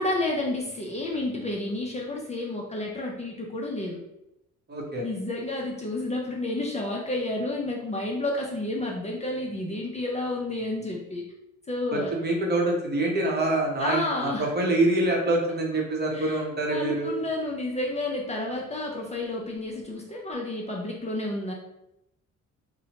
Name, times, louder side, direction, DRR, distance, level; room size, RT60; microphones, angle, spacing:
voice 1, 0.0-4.0 5.0-11.3 11.7-12.1 13.8-14.5 16.1-16.4 16.7-21.5, left 2 dB, 25° left, -2 dB, 0.4 m, -30 dB
voice 2, 4.7-5.0 11.9-17.1, right 2 dB, 35° right, 0 dB, 0.7 m, -25 dB
2.7 x 2.1 x 2.8 m, 0.84 s
cardioid pair, 90°, 30 cm